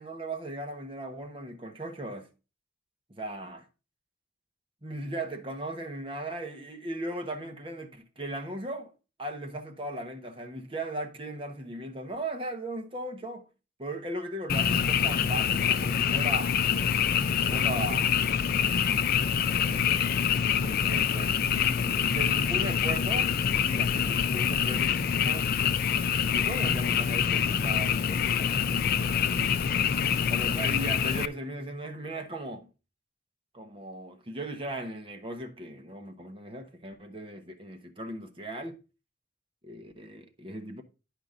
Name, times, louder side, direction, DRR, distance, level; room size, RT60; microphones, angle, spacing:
voice 1, 0.0-2.3 3.1-3.6 4.8-8.9 9.2-13.5 13.8-16.6 17.5-18.2 19.6-20.0 20.6-23.3 23.6-25.5 26.3-29.7 30.3-32.6 33.5-38.8 39.6-40.8, right 1 dB, 30° right, 1.1 m, -38 dB
Frog, 14.5-31.3, left 8 dB, 50° left, 0.4 m, -26 dB
10.5 x 5.1 x 3.7 m
head